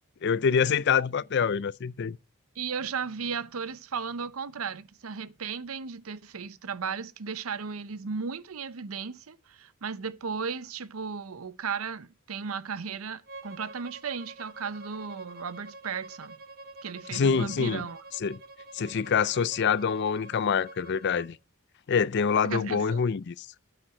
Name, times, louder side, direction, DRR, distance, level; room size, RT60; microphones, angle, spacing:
voice 1, 0.2-2.2 17.1-17.9 18.2-18.4 18.7-21.4 21.9-23.5, left 6 dB, 55° left, 0.4 m, -26 dB
voice 2, 2.6-16.4 16.8-18.0 22.4-23.0, right 6 dB, 85° right, 0.7 m, -35 dB
Bowed string instrument, 13.3-21.3, right 2 dB, 45° right, 1.4 m, -47 dB
9.4 x 8.9 x 4.4 m
head